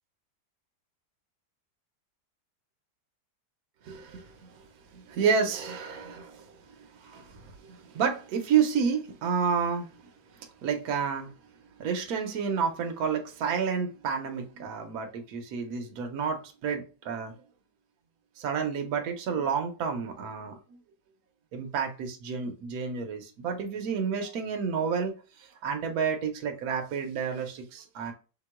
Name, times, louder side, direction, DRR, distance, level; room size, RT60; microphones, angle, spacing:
voice 1, 3.8-11.3 11.8-17.3 18.4-20.8 21.5-28.1, right 6 dB, 70° right, 1.2 m, -30 dB
3.5 x 3.0 x 4.6 m
omnidirectional pair, 1.7 m